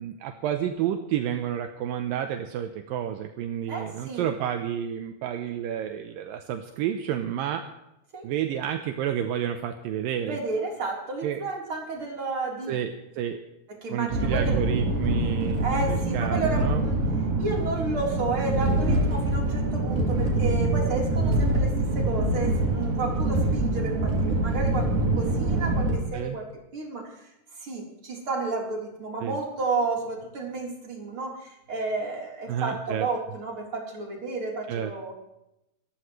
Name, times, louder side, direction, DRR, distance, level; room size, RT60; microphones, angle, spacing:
voice 1, 0.0-7.6 8.2-10.4 11.2-11.4 12.7-13.4 13.9-16.9 21.2-21.4 26.1-26.4 29.2-29.4 32.5-33.1 34.7-34.9, right 10 dB, 75° right, 6 dB, 2.2 m, -30 dB
voice 2, 3.7-4.3 8.1-8.3 10.2-12.8 13.8-14.6 15.6-17.0 17.4-24.9 25.2-26.5 26.7-27.0 27.6-35.1, right 3 dB, 30° right, -2 dB, 4.4 m, -31 dB
sound 1, 14.1-26.0, right 2 dB, 60° right, 4.9 m, -25 dB
28.0 x 14.0 x 3.2 m, 0.85 s
omnidirectional pair, 4.8 m